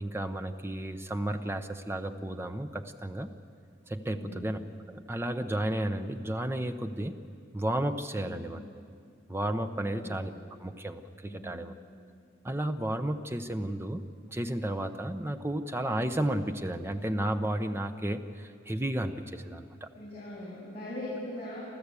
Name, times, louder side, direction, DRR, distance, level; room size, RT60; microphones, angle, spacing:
voice 1, 0.0-3.3 3.9-4.6 4.9-7.2 7.5-8.6 9.3-10.3 10.6-11.7 12.4-19.9, right 1 dB, 15° right, 8 dB, 0.8 m, -33 dB
voice 2, 4.1-4.5 8.1-8.5 9.8-10.2 11.3-11.7 19.9-21.6, left 1 dB, 30° left, -9 dB, 6.9 m, -41 dB
29.0 x 13.0 x 8.4 m, 2.4 s
head